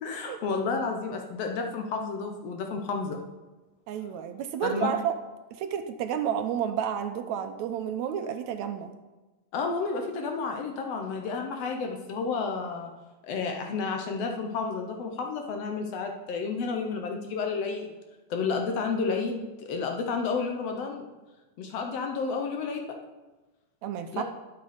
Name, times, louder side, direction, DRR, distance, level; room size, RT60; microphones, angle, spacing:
voice 1, 0.0-3.2 4.6-4.9 9.5-12.9 13.2-17.9 18.3-21.0 21.6-22.9 24.1-24.2, left 4 dB, 65° left, 3 dB, 1.8 m, -31 dB
voice 2, 3.9-5.2 5.5-8.9 23.8-24.2, right 9 dB, 75° right, 8 dB, 1.9 m, -31 dB
11.0 x 8.1 x 5.0 m, 1.2 s
omnidirectional pair, 3.4 m